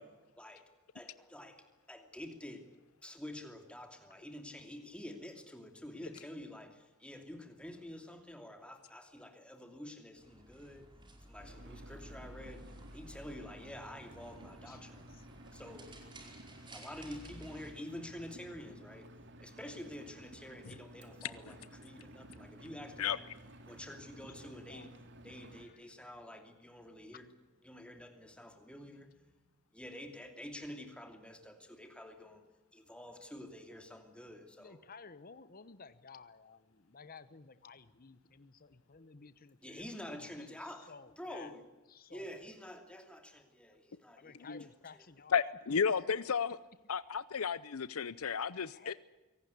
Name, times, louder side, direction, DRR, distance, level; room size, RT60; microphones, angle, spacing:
voice 1, 0.4-2.7 3.0-10.9 11.2-15.0 15.5-16.0 16.7-19.1 19.4-23.2 23.7-27.3 27.6-29.4 29.7-32.5 32.7-34.8 39.6-41.6 42.1-44.5 44.9-45.0, left 1 dB, 5° left, 5 dB, 2.8 m, -48 dB
sound 1, 10.2-17.7, right 1 dB, 20° right, 4.8 m, -54 dB
Engine, 11.4-25.7, right 1 dB, 55° right, 2.4 m, -54 dB
voice 2, 14.7-15.2 24.4-24.9 34.6-41.5 41.9-42.3 44.0-45.3 48.7-48.9, left 4 dB, 40° left, 13 dB, 1.0 m, -55 dB
voice 3, 45.3-46.6 46.9-48.9, left 6 dB, 75° left, 16 dB, 0.7 m, -33 dB
24.5 x 18.0 x 8.4 m, 1.1 s
head